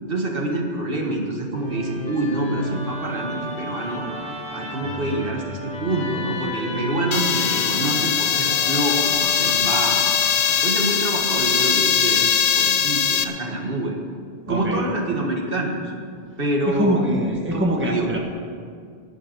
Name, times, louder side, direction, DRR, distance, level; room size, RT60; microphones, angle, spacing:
voice 1, 0.0-4.1 4.5-10.0 10.5-12.3 12.5-14.0 14.5-15.9 16.4-17.0 17.5-18.2, right 2 dB, 60° right, 1 dB, 1.7 m, -26 dB
Musical instrument, 1.5-10.7, left 1 dB, 5° left, 1.6 m, -32 dB
sound 1, 7.1-13.2, left 8 dB, 90° left, 1.0 m, -21 dB
voice 2, 14.5-14.8 16.6-18.2, right 1 dB, 10° right, 0 dB, 1.3 m, -23 dB
11.0 x 7.1 x 9.2 m, 2.2 s
omnidirectional pair, 1.1 m